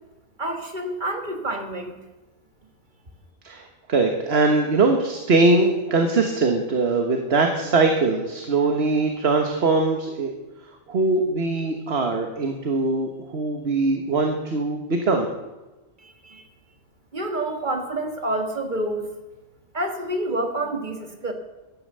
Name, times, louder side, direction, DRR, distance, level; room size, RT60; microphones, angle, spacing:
voice 1, 0.4-2.0 16.0-16.5 17.1-19.1 19.7-21.3, right 1 dB, 40° right, 4 dB, 1.8 m, -28 dB
voice 2, 3.4-10.3 10.9-15.3, right 3 dB, 55° right, 4 dB, 1.6 m, -21 dB
14.5 x 11.0 x 6.8 m, 1.1 s
omnidirectional pair, 1.3 m